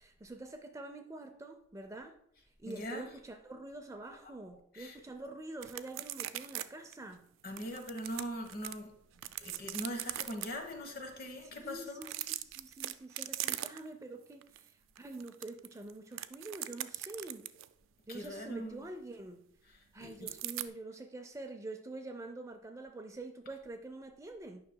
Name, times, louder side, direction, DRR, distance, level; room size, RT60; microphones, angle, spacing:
voice 1, 0.0-2.2 2.6-7.2 11.4-17.5 18.1-19.4 19.9-24.6, right 2 dB, 15° right, 0.5 m, -46 dB
voice 2, 2.7-3.1 4.7-5.0 7.4-8.9 9.4-12.0 18.1-18.8 20.0-20.3, equal, 50° left, 1.1 m, -41 dB
sound 1, 5.6-6.7 6.9-7.0 7.6-8.7 9.2-10.5 11.9-14.0 14.4-14.6 15.0-17.7 20.3-20.7, right 14 dB, 90° right, 0.3 m, -40 dB
9.5 x 5.7 x 2.2 m
head